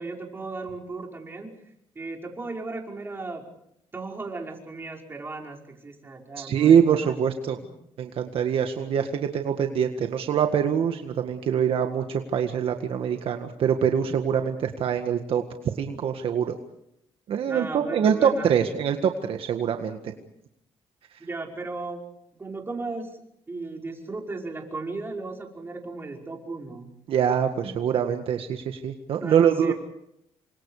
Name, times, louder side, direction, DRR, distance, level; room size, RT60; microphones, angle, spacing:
voice 1, 0.0-1.5 2.0-3.5 3.9-7.2 7.6-7.7 17.4-18.6 21.2-22.0 22.4-23.1 23.5-26.9 27.6-27.7 29.2-29.7, right 3 dB, 20° right, 1 dB, 5.5 m, -36 dB
voice 2, 6.4-7.6 8.0-15.4 15.7-16.5 17.3-20.1 27.1-27.5 27.8-29.7, right 8 dB, 60° right, 5 dB, 1.8 m, -24 dB
29.0 x 25.0 x 5.0 m, 0.76 s
cardioid pair, 120°, 10 cm